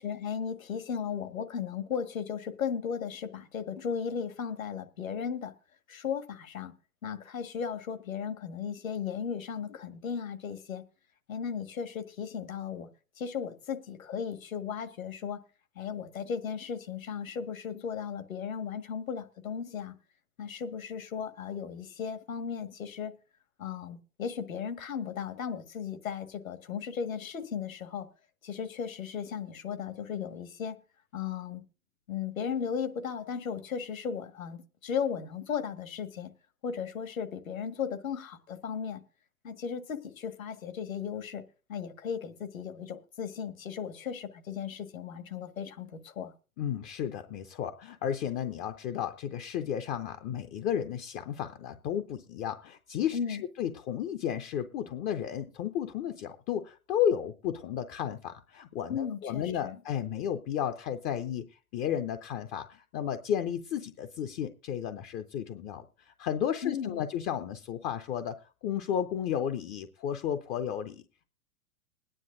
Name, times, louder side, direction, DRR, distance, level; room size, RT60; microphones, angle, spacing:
voice 1, 0.0-5.5 5.9-6.7 7.0-10.8 11.3-12.9 13.2-15.4 15.8-20.0 20.4-23.1 23.6-28.1 28.4-30.8 31.1-31.6 32.1-36.3 36.6-39.0 39.4-41.4 41.7-46.3 53.1-53.4 58.9-59.8 66.6-67.0, left 7 dB, 70° left, 1.7 m, -36 dB
voice 2, 46.6-71.0, left 9 dB, 20° left, 0.5 m, -33 dB
21.0 x 9.9 x 2.6 m
figure-of-eight pair, 105°, 43 cm